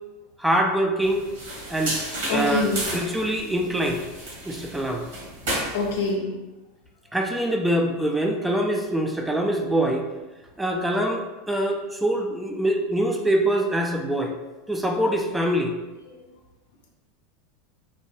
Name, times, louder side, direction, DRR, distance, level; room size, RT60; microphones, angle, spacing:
voice 1, 0.4-1.3 1.7-2.0 2.3-2.7 2.9-4.0 4.5-5.0 7.1-10.1 10.6-14.3 14.7-15.7, right 1 dB, 5° right, 3 dB, 0.3 m, -24 dB
sound 1, 1.0-6.1, right 1 dB, 75° right, 1.2 m, -33 dB
voice 2, 2.3-2.8 5.7-6.3 16.1-16.2, left 3 dB, 80° left, 1 dB, 0.6 m, -25 dB
2.7 x 2.1 x 3.1 m, 1.1 s
hypercardioid pair, 105°, 0 cm